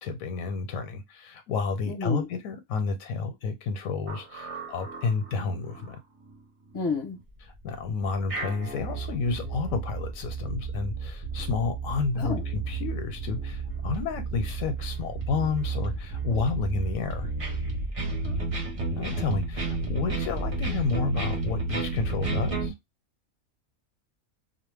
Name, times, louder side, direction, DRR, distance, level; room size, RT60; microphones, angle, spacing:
voice 1, 0.0-6.0 7.6-17.3 18.9-22.7, left 4 dB, 80° left, 1.0 m, -30 dB
voice 2, 1.9-2.3 6.7-7.2 12.2-12.4 18.2-18.4 19.1-19.2, left 4 dB, 25° left, 0.6 m, -31 dB
sound 1, 4.1-5.9 6.3-6.4 6.8-6.9 7.7-22.7, right 3 dB, 35° right, 0.5 m, -32 dB
2.3 x 2.1 x 3.2 m
omnidirectional pair, 1.4 m